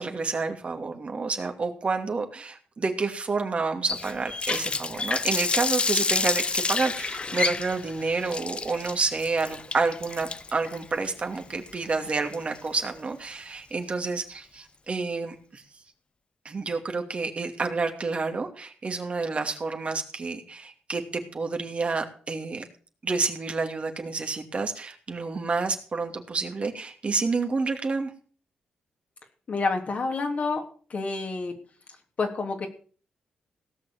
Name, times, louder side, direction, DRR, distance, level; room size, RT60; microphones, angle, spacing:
voice 1, 0.0-15.6 16.4-22.7 23.0-28.1, right 4 dB, 45° right, 4 dB, 2.6 m, -29 dB
Water tap faucet, 3.9-12.8, left 4 dB, 40° left, 0.9 m, -29 dB
voice 2, 29.5-30.6 30.9-31.5 32.2-32.7, left 3 dB, 55° left, 3 dB, 3.3 m, -28 dB
17.5 x 6.4 x 7.5 m, 0.42 s
supercardioid pair, 55°, 3 cm